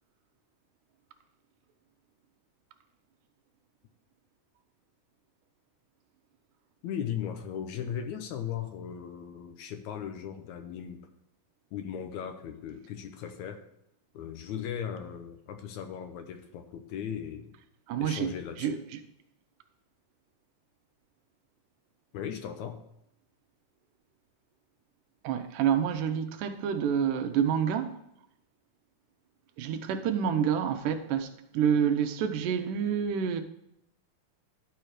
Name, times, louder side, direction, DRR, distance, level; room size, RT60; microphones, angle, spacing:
voice 1, 6.8-11.1 11.7-13.6 14.1-17.5 18.0-18.8 22.1-22.8, left 8 dB, 75° left, 1.9 m, -37 dB
voice 2, 17.9-18.3 18.6-19.0 25.2-28.0 29.6-33.4, right 8 dB, 80° right, 2.3 m, -28 dB
12.0 x 4.5 x 4.9 m
omnidirectional pair, 3.7 m